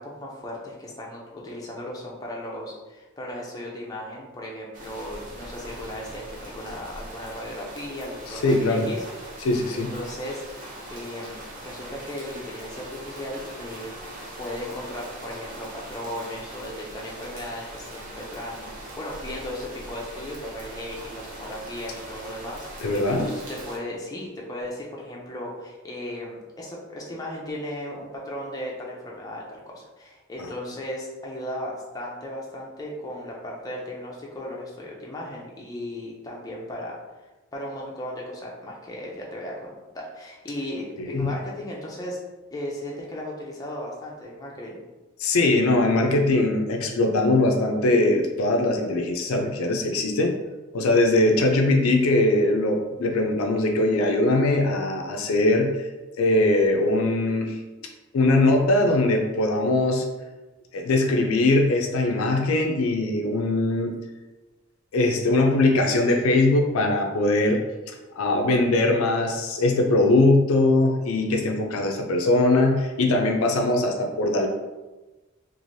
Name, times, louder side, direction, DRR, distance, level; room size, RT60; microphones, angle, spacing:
voice 1, 0.0-9.0 9.7-14.0 14.4-18.7 19.0-37.0 37.5-42.2 42.5-44.8, left 1 dB, 15° left, -3 dB, 0.5 m, -36 dB
sound 1, 4.7-23.8, right 1 dB, 40° right, 0.6 m, -41 dB
voice 2, 8.4-8.9 9.4-9.9 22.8-23.4 41.0-41.3 45.2-50.3 50.7-55.9 56.2-57.6 58.1-60.1 60.7-63.9 64.9-67.6 68.2-74.5, left 2 dB, 80° left, 3 dB, 0.4 m, -21 dB
3.1 x 2.5 x 2.6 m, 1.1 s
head